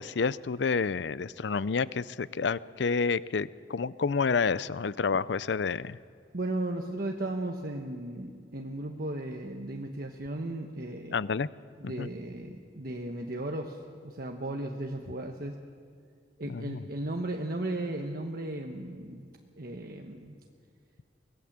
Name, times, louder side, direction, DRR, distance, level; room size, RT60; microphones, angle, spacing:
voice 1, 0.0-6.0 11.1-11.5 11.8-12.1 16.4-16.8, left 5 dB, 65° left, 18 dB, 0.5 m, -29 dB
voice 2, 6.3-11.2 11.8-15.5 16.4-19.2 19.6-20.3, right 1 dB, 55° right, 2 dB, 1.2 m, -35 dB
24.5 x 19.5 x 7.4 m, 2.1 s
head